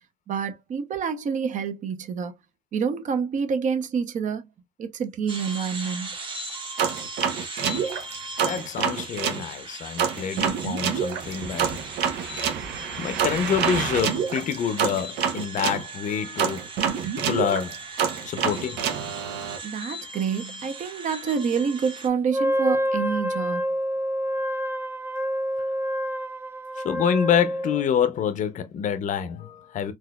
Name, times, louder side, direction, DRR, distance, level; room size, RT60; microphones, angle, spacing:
voice 1, 0.3-2.3 2.7-4.5 4.8-6.1 19.6-23.6, right 6 dB, 50° right, 0.8 m, -27 dB
sound 1, 5.3-22.1, right 2 dB, 30° right, 1.0 m, -39 dB
sound 2, 6.8-9.4 10.0-15.8 16.4-19.6, right 7 dB, 80° right, 0.7 m, -27 dB
voice 2, 8.4-11.8 12.1-12.5 13.0-16.6 17.2-17.8 18.2-18.9 26.8-29.9, left 8 dB, 50° left, 0.6 m, -27 dB
Wind instrument woodwind instrument, 22.3-27.9, equal, 15° right, 0.4 m, -27 dB
4.1 x 2.4 x 2.2 m
cardioid pair, 110°, 17 cm